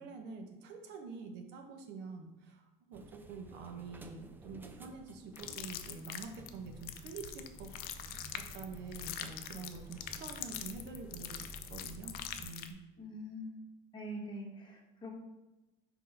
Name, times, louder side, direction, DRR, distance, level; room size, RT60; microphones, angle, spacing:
voice 1, 0.0-2.6 2.9-8.2 8.5-12.8 14.7-14.8, right 4 dB, 70° right, 4 dB, 1.0 m, -47 dB
Going Down In The Elevator, 2.9-12.5, right 1 dB, 10° right, 0.4 m, -53 dB
sound 1, 5.4-12.7, left 10 dB, 55° left, 0.5 m, -44 dB
voice 2, 13.0-13.6 13.9-15.1, equal, 25° left, 0 dB, 1.3 m, -44 dB
4.4 x 4.1 x 5.5 m, 1.0 s
cardioid pair, 145°, 19 cm